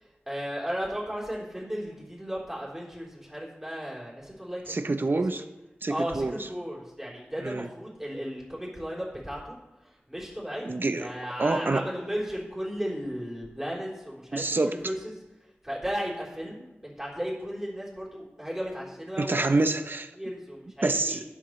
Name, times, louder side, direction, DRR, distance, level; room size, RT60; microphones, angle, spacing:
voice 1, 0.3-4.8 5.4-5.5 5.9-9.6 10.1-10.7 11.0-15.1 15.6-19.5 20.2-21.2, equal, 10° right, -5 dB, 3.8 m, -35 dB
voice 2, 4.7-5.4 5.8-6.5 7.4-7.7 10.7-11.1 11.4-11.9 14.3-14.8 19.2-20.1 20.8-21.2, right 2 dB, 55° right, 8 dB, 0.8 m, -27 dB
12.0 x 10.5 x 3.2 m, 1.0 s
wide cardioid pair, 75°, 4 cm